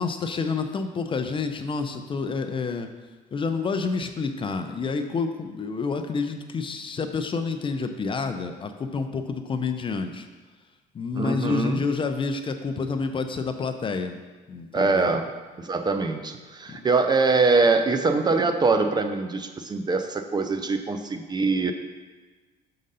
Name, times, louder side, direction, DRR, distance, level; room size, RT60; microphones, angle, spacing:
voice 1, 0.0-2.9 3.3-10.3 10.9-14.1 14.5-15.1 16.7-16.8, left 4 dB, 30° left, 7 dB, 0.5 m, -28 dB
voice 2, 11.2-11.8 14.7-15.3 15.6-21.7, right 3 dB, 25° right, 7 dB, 0.4 m, -23 dB
6.3 x 3.8 x 5.4 m, 1.3 s
cardioid pair, 110°, 17 cm